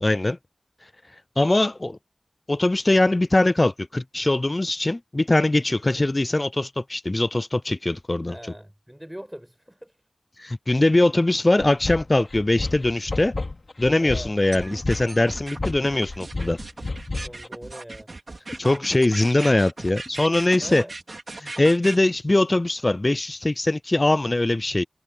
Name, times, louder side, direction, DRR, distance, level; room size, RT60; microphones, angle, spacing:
voice 1, 0.0-0.4 1.4-2.0 2.5-8.3 10.4-13.3 13.8-16.6 18.6-20.8 21.4-24.8, left 2 dB, 35° left, 0.3 m, -21 dB
voice 2, 8.3-10.0 14.0-14.4 17.2-18.7 20.6-20.9, equal, 5° right, 5.5 m, -41 dB
sound 1, 11.6-17.5, left 3 dB, 60° left, 2.7 m, -31 dB
sound 2, 14.5-22.0, right 2 dB, 60° right, 4.4 m, -37 dB
wide cardioid pair, 55°, 0 cm